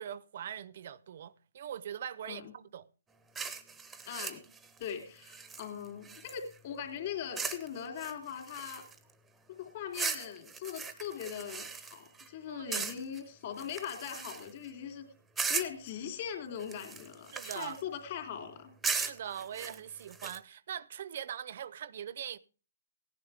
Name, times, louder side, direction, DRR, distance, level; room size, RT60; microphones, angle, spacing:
voice 1, 0.0-2.9 12.5-12.9 17.3-17.8 18.9-22.4, right 9 dB, 50° right, 0.6 m, -42 dB
sound 1, 3.4-6.6 7.4-7.7 8.0-9.1 9.9-12.3 12.7-13.2 13.6-14.7 15.4-15.9 16.6-17.8 18.8-20.4, right 5 dB, 5° right, 0.7 m, -38 dB
voice 2, 4.1-4.4 4.8-8.8 9.6-15.0 15.5-18.7, left 8 dB, 40° left, 3.3 m, -40 dB
17.5 x 10.5 x 3.5 m
hypercardioid pair, 155°, 0 cm